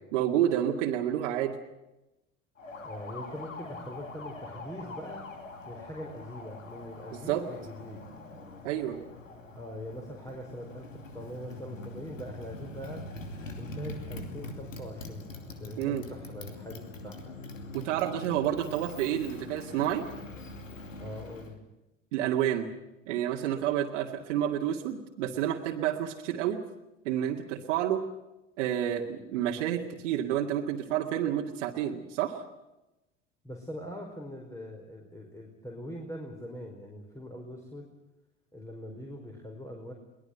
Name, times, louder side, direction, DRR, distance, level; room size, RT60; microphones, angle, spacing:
voice 1, 0.1-1.6 7.1-7.4 8.6-9.0 15.8-16.0 17.7-20.0 22.1-22.7 23.1-26.6 27.0-28.0 28.6-32.4, right 11 dB, 70° right, 0 dB, 2.2 m, -29 dB
Motorcycle, 2.6-21.6, left 2 dB, 90° left, 2.7 m, -43 dB
voice 2, 2.8-5.3 5.6-8.0 9.5-13.0 13.6-17.3 21.0-21.6 33.4-37.9 38.5-39.9, equal, 10° left, 1 dB, 4.9 m, -42 dB
23.0 x 19.5 x 8.0 m, 0.97 s
hypercardioid pair, 70°, 38 cm